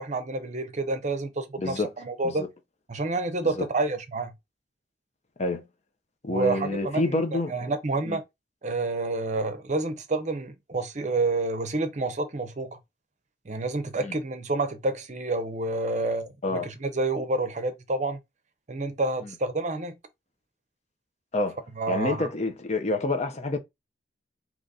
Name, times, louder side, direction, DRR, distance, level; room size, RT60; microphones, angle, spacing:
voice 1, 0.0-2.4 2.9-4.3 6.3-8.2 8.6-12.8 13.5-18.2 18.7-19.9 21.8-22.3, right 2 dB, 40° right, 0.7 m, -29 dB
voice 2, 1.6-1.9 2.2-2.5 3.4-3.6 5.4-5.6 6.2-7.5 8.0-8.2 14.0-14.2 16.4-16.7 19.2-19.3 21.3-21.6 21.9-23.6, left 2 dB, 40° left, 0.7 m, -28 dB
3.9 x 3.0 x 4.0 m
head